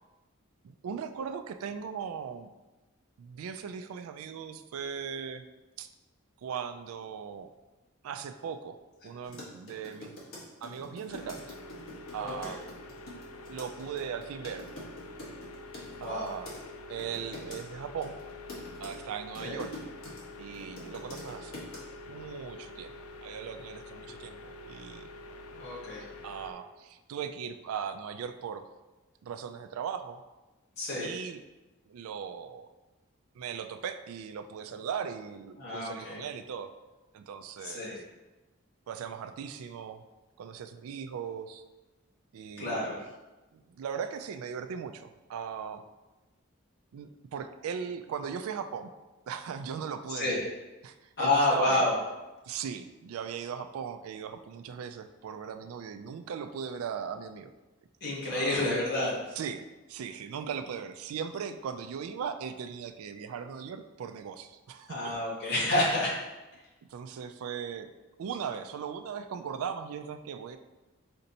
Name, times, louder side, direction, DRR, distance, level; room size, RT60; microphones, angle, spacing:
voice 1, 0.6-2.5 3.2-5.4 5.8-5.9 6.4-7.5 8.0-8.8 9.0-10.2 10.6-11.5 12.1-12.6 13.5-14.6 16.0-16.5 16.9-18.2 18.8-19.7 20.4-21.7 22.1-22.9 23.2-25.1 26.2-28.7 29.2-30.2 31.0-31.4 31.9-32.7 33.3-36.7 37.1-37.9 38.9-40.0 40.4-41.6 42.3-43.1 43.5-45.8 46.9-48.9 49.3-50.4 50.8-51.9 52.5-57.5 58.3-58.6 59.4-65.1 66.9-67.9 68.2-70.6, right 7 dB, 80° right, 9 dB, 0.3 m, -38 dB
sound 1, 9.2-16.6 17.0-17.6 18.0-20.2 20.5-21.8, left 1 dB, 70° left, 1.2 m, -45 dB
sound 2, 11.1-26.5, left 2 dB, 90° left, 0.4 m, -46 dB
voice 2, 12.2-12.5 16.0-16.3 19.4-19.6 25.5-26.0 30.8-31.1 35.6-36.2 37.6-38.0 42.6-43.0 50.1-50.4 51.2-51.9 58.0-59.2 64.9-66.2, left 2 dB, 50° left, -6 dB, 1.4 m, -29 dB
4.3 x 2.7 x 3.9 m, 1.1 s
head